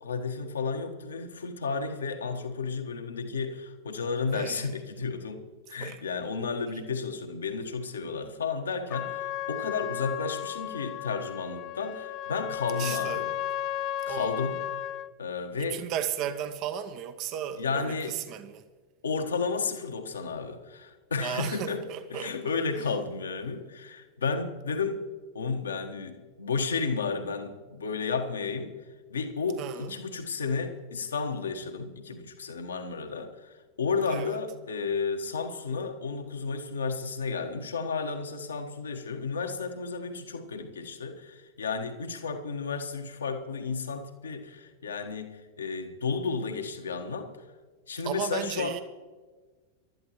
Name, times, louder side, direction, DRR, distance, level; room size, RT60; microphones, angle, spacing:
voice 1, 0.0-13.3 14.1-14.6 15.2-15.9 17.6-18.2 19.0-21.8 22.1-25.0 25.3-28.8 29.1-47.3 47.9-48.8, left 4 dB, 70° left, 1.4 m, -32 dB
voice 2, 4.3-4.7 5.8-6.0 12.8-13.2 14.0-14.4 15.6-18.6 21.2-22.5 22.8-22.9 29.6-29.9 34.1-34.4 48.0-48.8, right 10 dB, 40° right, 0.8 m, -35 dB
Trumpet, 8.9-15.1, left 12 dB, 35° left, 0.5 m, -34 dB
24.5 x 12.5 x 3.1 m
figure-of-eight pair, 90°, 0 cm